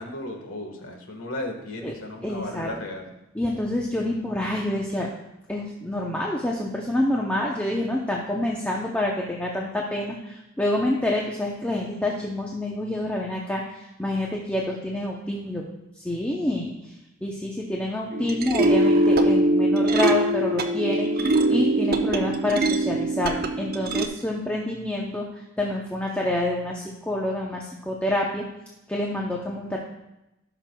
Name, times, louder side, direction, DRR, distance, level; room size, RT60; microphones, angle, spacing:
voice 1, 0.0-3.1, left 1 dB, 85° left, 3 dB, 1.5 m, -35 dB
voice 2, 2.2-2.7 3.3-5.1 5.5-15.6 16.0-16.9 17.2-28.4 28.9-29.8, left 1 dB, 5° left, -2 dB, 0.7 m, -27 dB
sound 1, 18.1-24.1, right 1 dB, 45° right, 0.6 m, -22 dB
16.0 x 5.9 x 2.3 m, 0.92 s
head